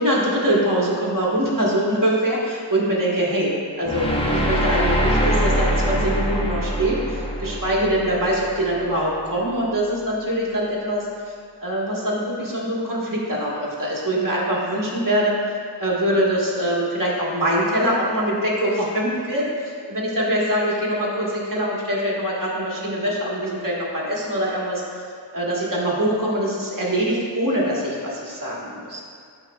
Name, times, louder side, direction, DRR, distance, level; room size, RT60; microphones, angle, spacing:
voice 1, 0.0-11.3 11.6-15.4 15.8-24.8 25.3-29.0, right 1 dB, 45° right, -4 dB, 1.5 m, -23 dB
sound 1, 3.8-8.9, equal, 15° left, 0.8 m, -23 dB
11.0 x 4.1 x 2.3 m, 2.2 s
wide cardioid pair, 50°, 44 cm